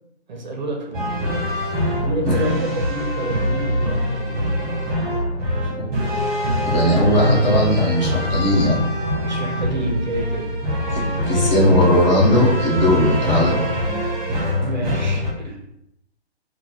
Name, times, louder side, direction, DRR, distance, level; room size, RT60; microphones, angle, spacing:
voice 1, 0.3-1.3 2.0-4.4 9.2-10.5 14.6-15.6, right 1 dB, 45° right, 2 dB, 0.5 m, -29 dB
sound 1, 0.9-15.3, equal, 20° right, 0.9 m, -23 dB
voice 2, 6.6-8.8 10.9-13.7, left 1 dB, 40° left, -4 dB, 1.3 m, -18 dB
3.7 x 2.2 x 3.0 m, 0.79 s
figure-of-eight pair, 145°, 34 cm